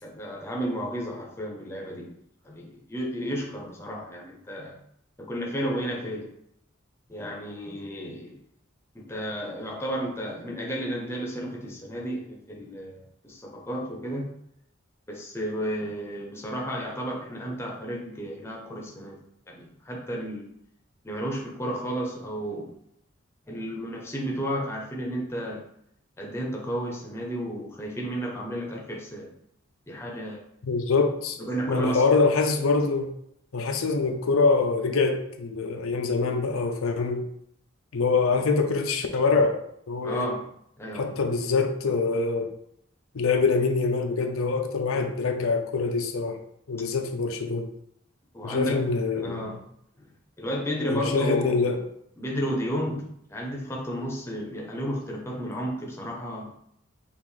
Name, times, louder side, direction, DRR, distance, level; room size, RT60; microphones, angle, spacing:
voice 1, 0.0-2.1 2.4-4.8 5.2-6.3 7.1-8.4 8.9-14.3 15.1-19.2 19.5-20.5 21.0-22.7 23.5-25.7 26.2-29.3 29.9-30.4 31.4-32.1 40.0-40.5 40.8-41.2 48.3-48.9 49.1-49.6 50.0-50.1 50.4-51.7 52.2-56.5, equal, 10° left, -1 dB, 0.7 m, -32 dB
voice 2, 30.6-31.4 31.7-33.1 33.5-37.3 37.9-39.6 39.9-40.3 40.9-42.5 43.1-46.4 46.7-47.7 48.4-49.6 50.8-51.8, left 4 dB, 90° left, 5 dB, 0.5 m, -24 dB
5.5 x 2.5 x 3.2 m, 0.71 s
head